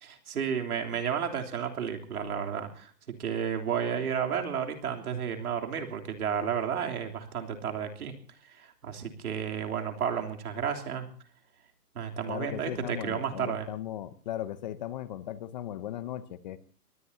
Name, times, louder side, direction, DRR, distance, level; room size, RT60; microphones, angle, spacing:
voice 1, 0.0-8.1 8.4-11.1 11.9-13.7, right 7 dB, 65° right, 4 dB, 3.4 m, -32 dB
voice 2, 12.3-16.6, left 12 dB, 30° left, 14 dB, 0.8 m, -37 dB
23.5 x 19.5 x 2.8 m, 0.43 s
hypercardioid pair, 145°, 48 cm